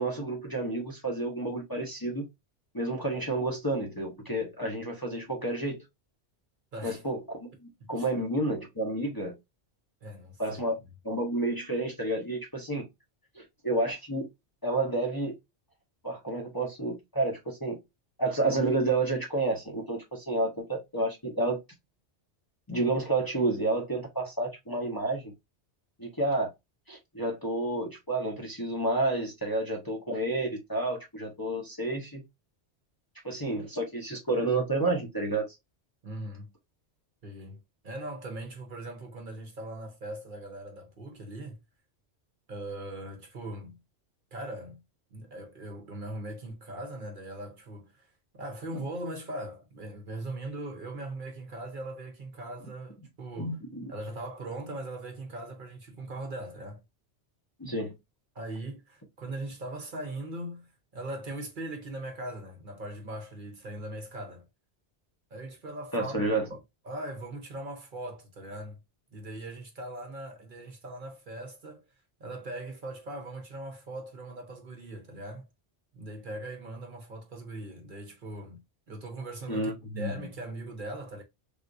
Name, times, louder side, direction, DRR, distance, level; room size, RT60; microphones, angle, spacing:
voice 1, 0.0-2.3 2.7-5.8 6.8-9.3 10.4-10.7 11.0-12.8 13.4-14.3 14.6-15.4 16.0-17.8 18.2-21.6 22.7-25.3 26.0-26.5 26.9-32.2 33.2-35.5 53.4-53.9 57.6-57.9 65.9-66.5 79.5-80.3, right 2 dB, 20° left, 0.7 m, -30 dB
voice 2, 6.7-7.0 7.8-8.1 10.0-10.6 36.0-36.5 37.2-37.6 37.8-41.6 42.5-43.8 44.3-44.8 45.1-48.1 48.3-53.6 53.9-56.8 58.3-64.5 65.3-66.1 66.5-66.6 66.8-68.8 69.1-71.8 72.2-75.4 75.9-78.6 78.9-81.2, right 1 dB, 50° right, 0.8 m, -40 dB
3.5 x 2.4 x 2.5 m
omnidirectional pair, 1.2 m